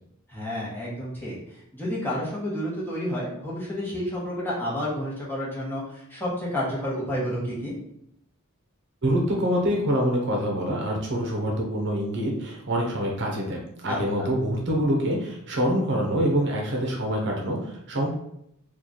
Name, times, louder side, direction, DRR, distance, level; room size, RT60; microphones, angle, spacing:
voice 1, 0.3-1.4 1.7-7.8 13.9-14.3, equal, 10° left, -6 dB, 1.1 m, -30 dB
voice 2, 9.0-18.1, equal, 55° right, -1 dB, 0.8 m, -25 dB
3.1 x 2.4 x 3.9 m, 0.75 s
head